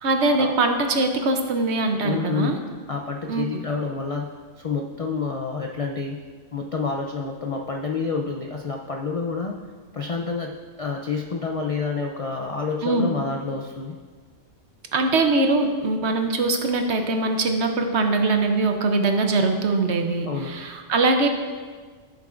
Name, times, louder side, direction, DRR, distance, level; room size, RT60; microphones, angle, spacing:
voice 1, 0.0-2.6 3.3-3.4 12.8-13.1 14.9-21.3, right 3 dB, 60° right, 5 dB, 1.0 m, -22 dB
voice 2, 2.0-2.6 2.9-4.3 4.6-6.2 6.5-9.6 9.9-13.9 20.3-20.5, left 4 dB, 50° left, 1 dB, 0.4 m, -28 dB
14.5 x 7.0 x 2.5 m, 1.5 s
omnidirectional pair, 1.3 m